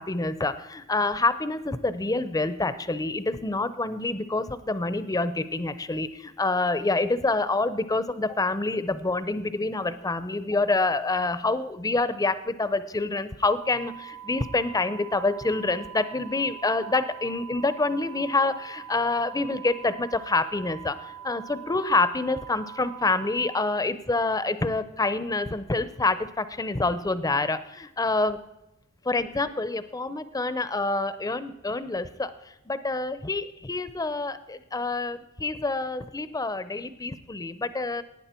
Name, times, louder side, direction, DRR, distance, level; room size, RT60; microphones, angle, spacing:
voice 1, 0.0-28.4 29.0-32.3 32.7-38.0, left 3 dB, 15° left, 13 dB, 0.6 m, -27 dB
sound 1, 13.6-23.6, right 11 dB, 45° right, 0.9 m, -43 dB
17.5 x 9.7 x 4.4 m, 0.91 s
head